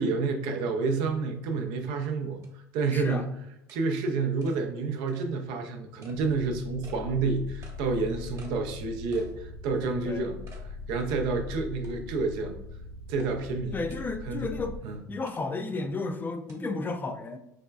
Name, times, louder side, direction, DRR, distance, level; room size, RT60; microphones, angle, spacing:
voice 1, 0.0-3.3 3.7-10.4 10.9-12.6 13.1-13.8 14.3-14.5 14.8-15.0, right 4 dB, 70° right, 5 dB, 0.5 m, -29 dB
sound 1, 1.7-1.8 2.4-2.5 2.9-3.0 3.7-3.8 4.4-4.6 5.1-5.2 6.0-6.2 6.8-7.0 7.6-7.8 8.4-8.6 9.1-9.4 9.8-9.9 10.5-10.7 11.1-11.2 11.8-12.2 13.2-13.3 13.9-14.1 15.3-15.4 16.5-16.6, right 3 dB, 40° right, 1.1 m, -53 dB
voice 2, 2.9-3.3 10.0-10.3 13.7-14.8 15.1-17.4, left 3 dB, 20° left, 7 dB, 0.4 m, -33 dB
sound 2, 6.1-14.8, left 4 dB, 90° left, 0.9 m, -41 dB
4.1 x 2.2 x 2.2 m, 0.82 s
hypercardioid pair, 75°, 9 cm